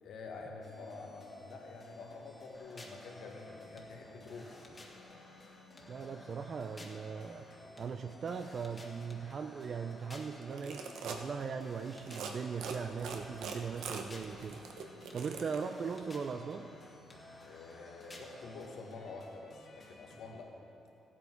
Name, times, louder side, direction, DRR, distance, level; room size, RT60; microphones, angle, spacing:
voice 1, 0.0-4.6 17.4-20.5, left 3 dB, 75° left, 1 dB, 1.7 m, -48 dB
sound 1, 0.6-20.3, left 1 dB, 45° left, 2.3 m, -56 dB
sound 2, 2.5-18.7, left 1 dB, 25° left, 1.6 m, -56 dB
voice 2, 5.9-7.5 7.8-14.6 15.1-16.7, right 6 dB, 50° right, 6 dB, 0.5 m, -39 dB
sound 3, 10.4-11.2 12.0-12.3 12.6-15.6, right 6 dB, 85° right, 1.0 m, -42 dB
15.0 x 8.5 x 4.6 m, 2.7 s
cardioid pair, 90°, 0 cm